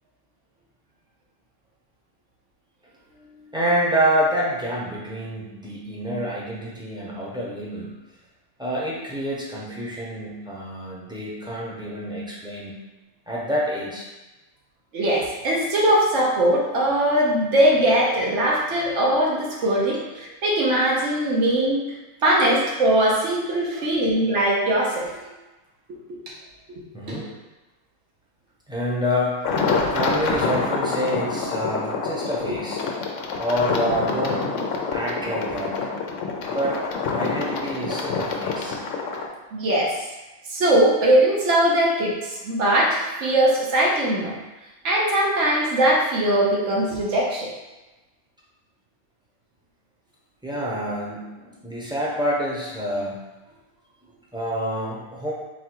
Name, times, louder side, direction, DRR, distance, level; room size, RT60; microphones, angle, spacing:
voice 1, 3.1-7.9 8.6-12.7 13.3-14.1 19.6-19.7 23.7-23.9 25.1-25.3 26.9-27.3 28.7-29.6 29.9-32.8 33.4-34.5 34.9-35.8 36.5-36.8 37.1-38.8 50.4-53.2 54.1-55.3, equal, 5° right, -6 dB, 0.7 m, -27 dB
voice 2, 14.9-21.8 22.2-25.1 26.1-26.2 32.5-32.6 39.5-39.9 40.5-44.3 44.8-47.5, right 1 dB, 75° right, -4 dB, 1.2 m, -20 dB
sound 1, 29.4-39.3, left 4 dB, 85° left, 0.9 m, -27 dB
3.9 x 2.3 x 4.5 m, 1.1 s
omnidirectional pair, 1.2 m